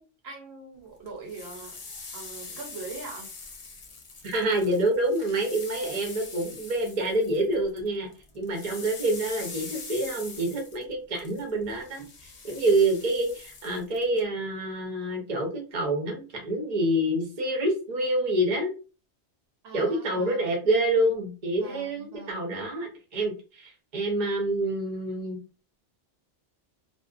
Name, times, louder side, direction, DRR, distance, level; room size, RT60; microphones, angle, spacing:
voice 1, 0.0-1.8 2.1-3.3 19.6-20.5 21.6-22.6, right 3 dB, 65° right, 0 dB, 1.0 m, -42 dB
sound 1, 1.1-7.9 8.1-14.2, left 4 dB, 45° left, 0.4 m, -43 dB
voice 2, 4.2-8.1 8.3-12.1 12.4-18.7 19.7-25.4, right 1 dB, 40° right, 1 dB, 0.7 m, -27 dB
2.5 x 2.1 x 2.3 m, 0.34 s
omnidirectional pair, 1.2 m